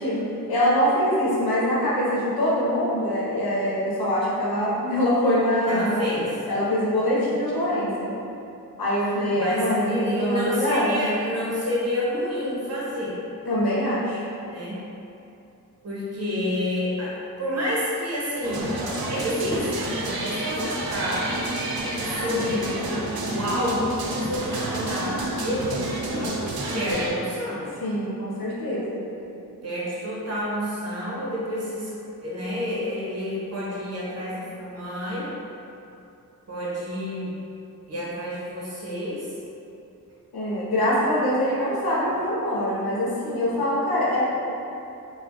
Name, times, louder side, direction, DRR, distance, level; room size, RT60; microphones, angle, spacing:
voice 1, 0.0-6.1 6.5-8.1 8.8-11.1 13.5-14.2 27.8-29.0 40.3-44.2, equal, 85° left, -7 dB, 0.9 m, -24 dB
voice 2, 5.7-6.3 9.4-13.2 14.4-14.8 15.8-18.7 19.1-19.8 20.0-21.3 22.0-26.4 26.7-27.7 29.6-31.9 32.2-35.3 36.5-37.4 37.9-39.3 42.1-42.2, left 1 dB, 45° right, -7 dB, 0.9 m, -29 dB
sound 1, 18.4-27.1, right 1 dB, 90° right, 0.6 m, -29 dB
4.1 x 2.2 x 2.9 m, 2.8 s
wide cardioid pair, 170°, 35 cm